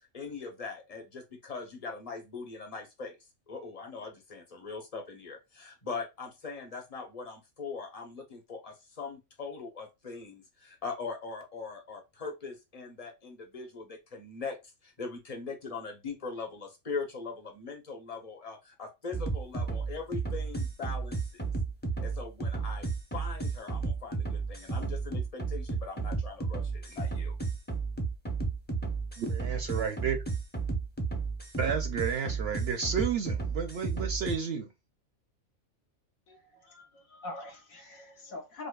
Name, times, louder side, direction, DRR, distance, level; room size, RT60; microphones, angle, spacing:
voice 1, 0.1-3.2 3.5-14.6 14.8-21.4 22.0-22.9 23.1-27.3, left 4 dB, 35° left, 0.8 m, -41 dB
sound 1, 19.1-34.4, right 4 dB, 15° left, 0.4 m, -33 dB
voice 2, 29.2-30.2 31.6-34.7, right 6 dB, 65° right, 0.7 m, -32 dB
voice 3, 36.3-38.7, left 2 dB, 85° left, 1.4 m, -44 dB
5.1 x 2.1 x 2.3 m
omnidirectional pair, 1.4 m